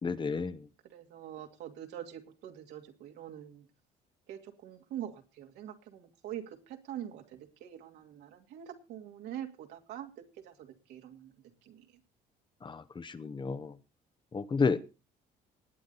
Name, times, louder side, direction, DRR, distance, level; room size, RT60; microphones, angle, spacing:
voice 1, 0.0-0.6 12.6-13.7 14.3-14.8, left 5 dB, 30° left, 13 dB, 0.9 m, -31 dB
voice 2, 0.8-3.7 4.3-11.3 11.6-11.8, right 10 dB, 85° right, 4 dB, 2.5 m, -44 dB
19.5 x 8.5 x 4.1 m, 0.29 s
cardioid pair, 110°, 17 cm